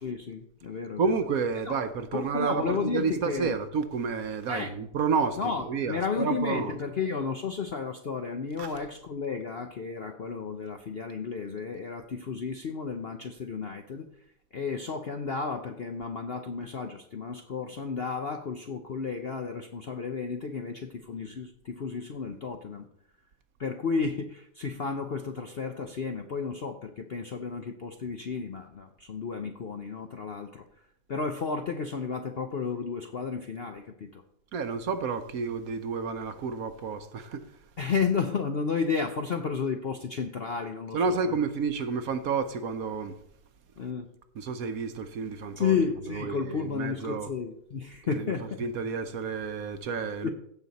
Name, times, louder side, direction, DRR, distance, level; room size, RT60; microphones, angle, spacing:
voice 1, 0.0-1.1 1.7-1.8 2.1-3.6 4.5-4.7 5.4-14.1 14.5-22.9 23.6-30.6 31.1-34.2 37.8-41.4 43.8-44.1 45.6-48.5 50.2-50.3, left 5 dB, 55° left, 0.6 m, -32 dB
voice 2, 1.0-6.8 8.6-8.7 34.5-37.6 40.9-43.2 44.4-45.8 46.1-47.3 48.0-50.3, right 5 dB, 65° right, 1.1 m, -30 dB
15.5 x 6.2 x 4.1 m
omnidirectional pair, 1.9 m